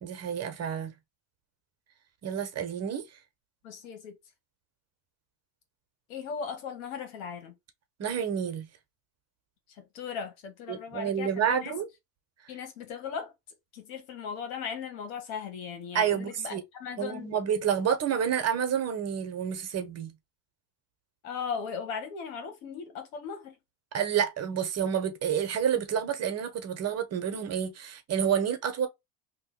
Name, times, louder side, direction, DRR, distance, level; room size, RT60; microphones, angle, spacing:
voice 1, 0.0-0.9 2.2-3.0 8.0-8.7 10.7-11.9 15.9-16.6 17.0-20.1 23.9-28.9, right 8 dB, 35° right, 1.0 m, -29 dB
voice 2, 3.6-4.1 6.1-7.5 9.7-11.8 12.5-13.3 13.7-17.3 21.2-23.6, left 6 dB, 85° left, 1.5 m, -38 dB
2.9 x 2.5 x 3.8 m
supercardioid pair, 105°, 42 cm